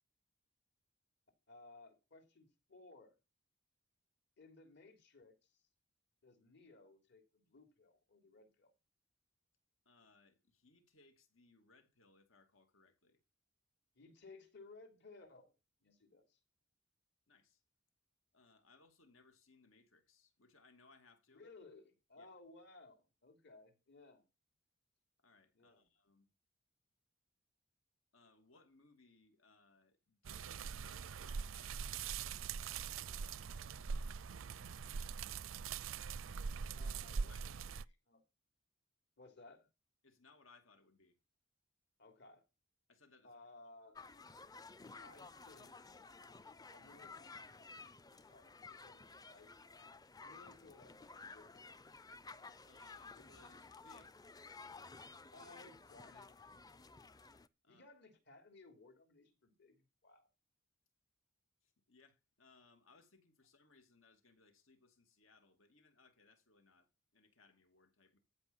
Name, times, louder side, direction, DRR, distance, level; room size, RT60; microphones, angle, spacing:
voice 1, 1.5-3.2 4.4-5.6 6.2-8.7 13.9-15.5 15.8-16.4 21.3-24.2 25.5-25.9 36.7-37.5 38.1-38.2 39.2-39.7 42.0-42.4 43.2-44.0 45.0-45.8 46.7-47.2 48.2-48.5 48.8-49.5 50.2-51.8 55.3-56.3 57.7-60.3, left 3 dB, 60° left, 3.3 m, -60 dB
voice 2, 9.8-13.2 17.3-17.6 18.3-21.4 22.2-22.3 25.2-26.3 28.1-34.0 36.7-38.0 40.0-41.2 42.9-43.4 52.6-54.2 57.6-57.9 61.6-68.2, left 3 dB, 85° left, 2.6 m, -68 dB
sound 1, 30.2-37.8, right 6 dB, 85° right, 0.5 m, -43 dB
sound 2, 44.0-57.5, left 4 dB, 20° left, 0.5 m, -55 dB
14.5 x 5.4 x 7.0 m
head